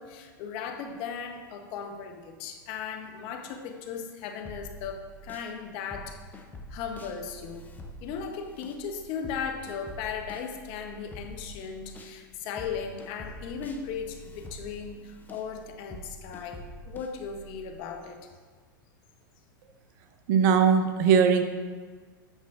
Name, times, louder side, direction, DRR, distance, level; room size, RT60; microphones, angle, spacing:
voice 1, 0.0-6.2 6.7-7.7 8.0-18.3, left 6 dB, 50° left, 5 dB, 0.9 m, -37 dB
sound 1, 4.4-5.5 5.9-12.2 12.6-17.8, equal, 15° left, 0.8 m, -46 dB
voice 2, 20.3-21.4, right 6 dB, 55° right, 7 dB, 0.7 m, -20 dB
8.9 x 7.2 x 2.5 m, 1.5 s
hypercardioid pair, 100°, 12 cm